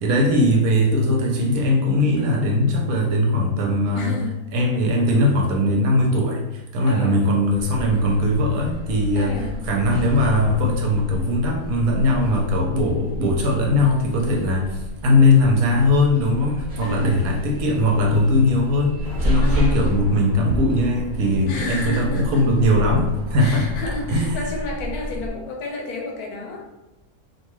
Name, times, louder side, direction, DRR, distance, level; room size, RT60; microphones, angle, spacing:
voice 1, 0.0-4.2 4.5-9.4 9.7-23.8 24.1-24.4, left 1 dB, 80° right, 0 dB, 1.1 m, -20 dB
voice 2, 3.9-4.4 6.8-7.2 9.2-9.5 16.8-17.2 19.4-19.8 21.5-22.7 23.4-26.6, left 3 dB, 85° left, 1 dB, 1.1 m, -31 dB
sound 1, 7.5-25.3, equal, 45° right, 0.6 m, -30 dB
Traffic noise roadway noise, 19.0-24.4, right 1 dB, 65° left, 1.1 m, -41 dB
2.7 x 2.2 x 3.1 m, 0.97 s
omnidirectional pair, 1.6 m